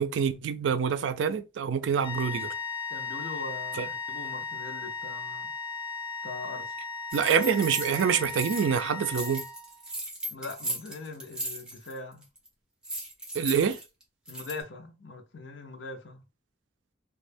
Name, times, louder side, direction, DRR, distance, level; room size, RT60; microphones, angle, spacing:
voice 1, 0.0-2.5 3.8-3.9 7.1-9.4 13.3-13.8, right 7 dB, 80° right, 0.3 m, -26 dB
sound 1, 2.0-9.9, left 4 dB, 30° left, 0.5 m, -36 dB
voice 2, 2.9-5.5 6.2-6.7 10.3-12.3 14.3-16.2, left 3 dB, 75° left, 0.6 m, -41 dB
sound 2, 7.1-8.8 9.1-12.0 12.2-12.5 12.8-14.6, right 1 dB, 5° right, 0.7 m, -37 dB
2.3 x 2.1 x 3.2 m
head